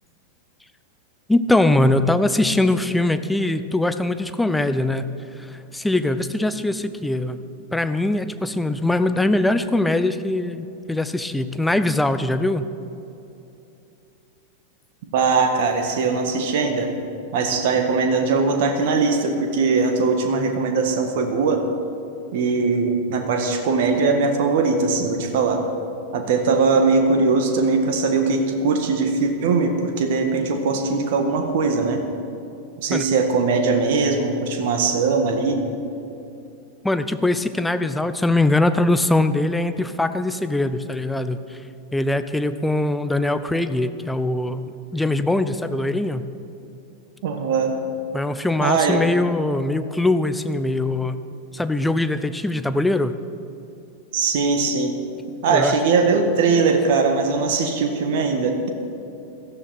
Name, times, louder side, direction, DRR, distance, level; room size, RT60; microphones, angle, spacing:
voice 1, 1.3-5.1 5.4-7.4 7.7-12.7 32.9-33.0 36.8-41.6 41.9-46.3 48.1-51.2 51.5-53.2 55.5-55.8, left 2 dB, 5° left, 11 dB, 0.7 m, -22 dB
voice 2, 15.1-16.9 17.3-21.6 22.3-25.6 26.1-32.0 32.8-35.6 47.2-47.7 48.6-49.0 54.1-55.0 55.4-58.6, right 4 dB, 50° right, 5 dB, 1.5 m, -20 dB
17.0 x 13.5 x 4.4 m, 2.8 s
figure-of-eight pair, 90°, 0 cm